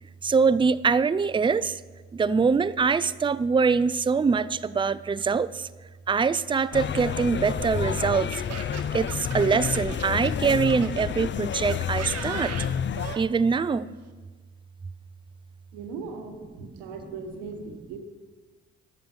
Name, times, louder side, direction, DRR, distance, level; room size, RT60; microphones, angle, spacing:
voice 1, 0.2-1.8 2.1-5.7 6.1-8.3 8.9-12.6 13.2-13.9, right 5 dB, 15° right, 16 dB, 0.4 m, -23 dB
sound 1, 6.7-13.1, left 8 dB, 35° left, 0.5 m, -29 dB
Laughter, 6.7-11.1 11.7-13.2, right 8 dB, 55° right, 1.1 m, -39 dB
voice 2, 15.7-18.0, right 4 dB, 85° right, 4 dB, 1.3 m, -38 dB
11.5 x 7.7 x 5.6 m, 1.4 s
hypercardioid pair, 45°, 31 cm